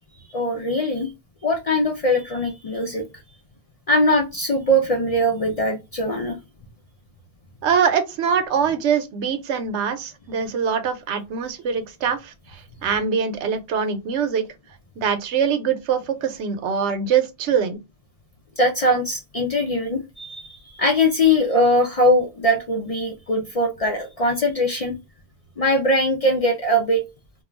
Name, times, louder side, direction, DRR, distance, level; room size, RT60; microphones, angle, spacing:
voice 1, 0.3-1.1 1.4-3.0 3.9-6.4 18.6-25.0 25.6-27.0, equal, 50° left, 0.4 m, -21 dB
voice 2, 7.6-14.5 15.0-17.8, right 7 dB, 85° right, 0.9 m, -23 dB
2.3 x 2.3 x 3.0 m
omnidirectional pair, 1.1 m